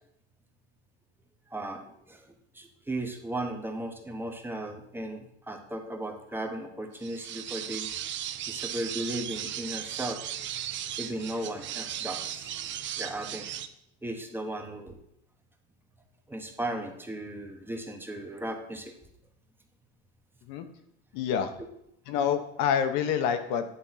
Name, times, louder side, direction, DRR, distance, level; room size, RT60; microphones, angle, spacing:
voice 1, 1.5-2.3 2.5-7.9 8.5-10.2 11.0-13.5 14.0-15.0 16.3-19.0, right 1 dB, 5° right, 4 dB, 1.0 m, -36 dB
sound 1, 7.0-13.7, right 11 dB, 35° right, 0.5 m, -36 dB
voice 2, 21.1-21.5 22.1-23.6, left 8 dB, 65° left, 8 dB, 1.1 m, -27 dB
9.8 x 3.7 x 5.7 m, 0.77 s
supercardioid pair, 120°, 32 cm